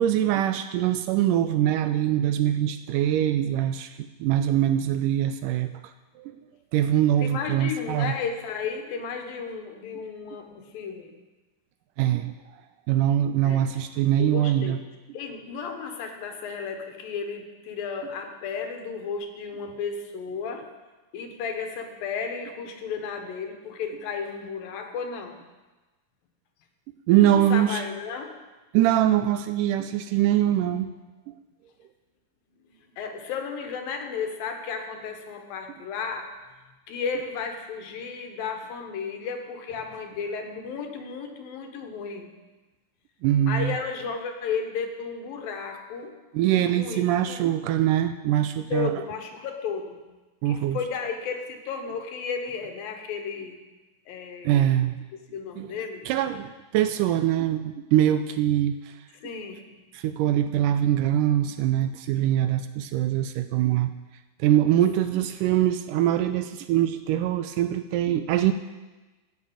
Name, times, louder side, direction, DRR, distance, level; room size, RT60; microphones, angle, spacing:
voice 1, 0.0-3.9 4.2-5.7 6.2-6.4 6.7-8.1 12.0-12.3 12.9-14.8 27.1-27.8 28.7-30.9 43.2-43.8 46.3-49.0 50.4-50.8 54.5-55.0 55.6-55.7 56.1-58.9 59.9-63.9 64.4-68.5, right 11 dB, 80° right, 10 dB, 2.0 m, -23 dB
voice 2, 7.2-11.1 13.4-13.7 14.2-14.8 15.1-20.7 21.1-25.4 27.2-28.4 33.0-36.3 36.9-42.3 43.5-46.1 46.5-47.4 48.3-48.4 48.7-50.0 50.5-53.6 54.1-54.7 55.1-56.1 59.1-59.7 64.7-64.8, left 5 dB, 80° left, 5 dB, 3.1 m, -33 dB
15.0 x 6.4 x 8.8 m, 1.2 s
omnidirectional pair, 4.0 m